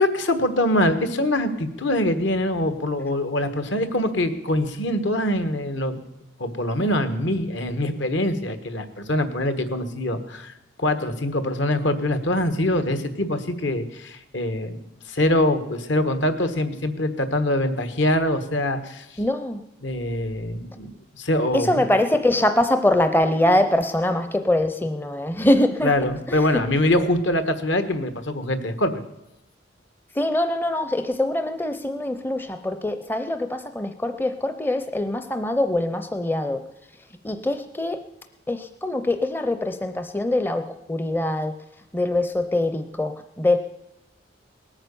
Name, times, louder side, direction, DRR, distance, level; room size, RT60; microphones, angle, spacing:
voice 1, 0.0-6.0 6.4-10.5 10.8-14.8 15.1-19.2 19.8-21.8 25.8-29.0, left 1 dB, 70° left, 9 dB, 1.4 m, -24 dB
voice 2, 19.2-19.6 21.5-25.9 26.3-26.6 30.1-36.6 37.2-38.0 38.5-41.5 41.9-43.6, left 1 dB, 10° left, 9 dB, 0.5 m, -23 dB
19.0 x 9.0 x 7.0 m, 0.89 s
head